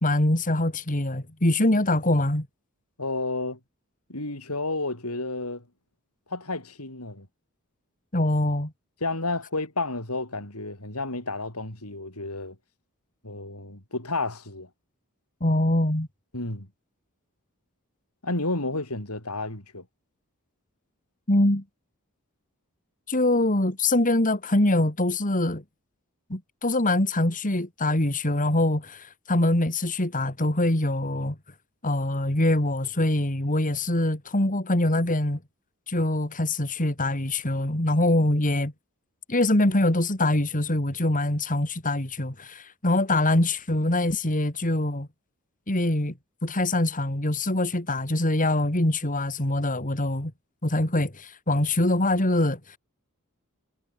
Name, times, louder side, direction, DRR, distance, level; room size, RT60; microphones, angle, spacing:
voice 1, 0.0-2.5 8.1-8.7 15.4-16.1 21.3-21.6 23.1-25.6 26.3-31.4 31.8-35.4 35.9-38.7 39.3-45.1 45.7-46.1 46.4-50.3 50.6-52.8, left 1 dB, 35° left, 3.2 m, -24 dB
voice 2, 3.0-3.6 4.1-5.6 6.3-7.3 9.0-12.6 13.2-14.7 16.3-16.7 18.2-19.8, left 2 dB, 90° left, 7.5 m, -31 dB
head